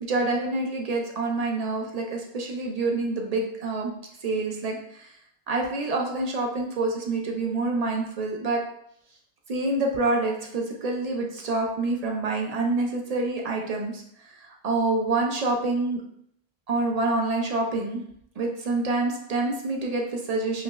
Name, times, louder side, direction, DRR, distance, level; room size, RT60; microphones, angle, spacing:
voice 1, 0.1-3.9 4.2-5.1 5.5-8.6 9.5-16.0 16.7-18.0 18.4-20.6, right 2 dB, 55° right, 0 dB, 0.4 m, -27 dB
4.7 x 2.0 x 2.2 m, 0.70 s
omnidirectional pair, 1.0 m